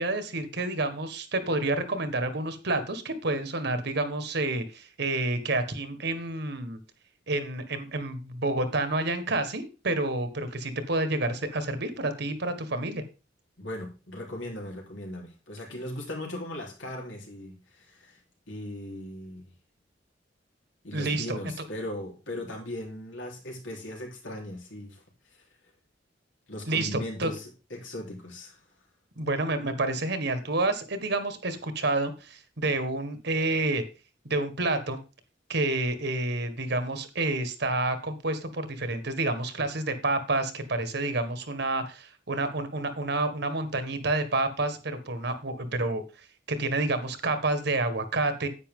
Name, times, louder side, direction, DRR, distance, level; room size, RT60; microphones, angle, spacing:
voice 1, 0.0-6.8 7.3-13.0 20.9-21.4 26.7-27.3 29.2-33.8 34.2-35.0 35.5-46.0 46.5-48.5, right 2 dB, 60° right, 9 dB, 1.5 m, -29 dB
voice 2, 13.6-18.2 18.5-19.5 20.8-25.0 26.5-28.6, left 1 dB, 85° left, 0 dB, 3.9 m, -38 dB
10.0 x 8.5 x 3.7 m, 0.31 s
head